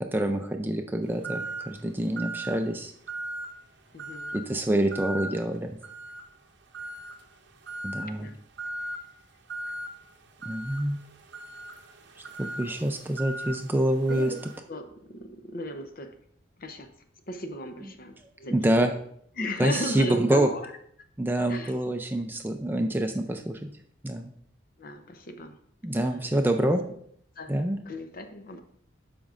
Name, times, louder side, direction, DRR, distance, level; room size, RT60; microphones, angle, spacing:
voice 1, 0.0-2.9 4.3-5.7 7.8-8.3 10.5-11.0 12.4-14.3 18.5-18.9 19.6-20.5 21.2-23.6 24.0-24.3 25.8-26.8 27.5-27.8, right 1 dB, 10° right, 5 dB, 0.4 m, -26 dB
sound 1, 1.2-1.7 2.2-2.6 3.1-3.6 4.0-4.4 4.9-5.3 5.8-6.3 6.7-7.2 7.7-8.1 8.6-9.0 9.5-9.9 10.4-14.6, right 2 dB, 55° right, 0.7 m, -38 dB
voice 2, 3.9-4.4 8.2-8.4 14.1-14.4 14.7-16.1 16.6-16.9 17.3-18.9 19.4-20.7 21.5-21.8 24.8-25.6 26.0-26.5 27.4-27.6 27.9-28.6, left 1 dB, 45° left, 7 dB, 0.7 m, -36 dB
12.0 x 5.2 x 2.5 m, 0.67 s
head